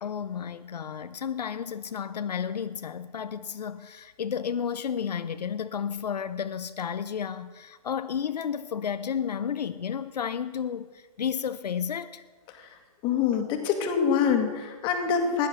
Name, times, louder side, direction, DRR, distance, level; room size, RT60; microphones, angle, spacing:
voice 1, 0.0-12.2, left 7 dB, 85° left, 0.7 m, -32 dB
voice 2, 13.0-15.5, left 7 dB, 25° left, 1.9 m, -25 dB
15.5 x 10.5 x 6.4 m
hypercardioid pair, 150°, 20 cm